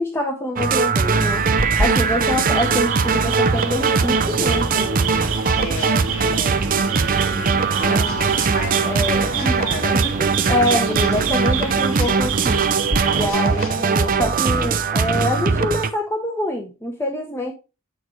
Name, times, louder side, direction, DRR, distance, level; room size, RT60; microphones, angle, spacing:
voice 1, 0.0-1.4 1.8-5.1 7.3-8.2 8.8-9.6 9.9-10.0 10.5-12.7 13.1-17.5, left 1 dB, 10° left, 2 dB, 0.9 m, -25 dB
sound 1, 0.6-15.9, right 5 dB, 40° right, 0.6 m, -20 dB
sound 2, 1.1-13.3, right 4 dB, 85° right, 1.7 m, -28 dB
sound 3, 5.1-9.9 10.3-14.3, left 4 dB, 65° left, 1.8 m, -40 dB
voice 2, 5.6-6.6 7.7-10.5, left 2 dB, 35° left, 4 dB, 1.8 m, -32 dB
8.6 x 6.5 x 3.1 m, 0.29 s
head